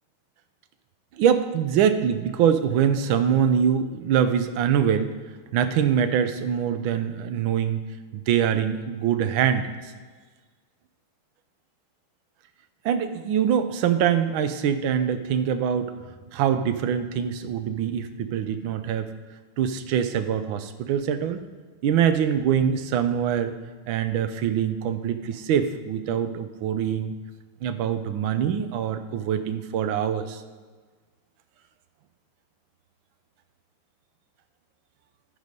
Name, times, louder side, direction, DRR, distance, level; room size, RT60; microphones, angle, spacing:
voice 1, 1.2-5.1 5.5-7.8 8.1-9.7 12.8-16.0 16.3-19.1 19.6-21.4 21.8-23.5 23.9-27.1 27.6-30.4, right 8 dB, 70° right, 9 dB, 1.4 m, -24 dB
12.0 x 4.9 x 5.2 m, 1.4 s
omnidirectional pair, 2.4 m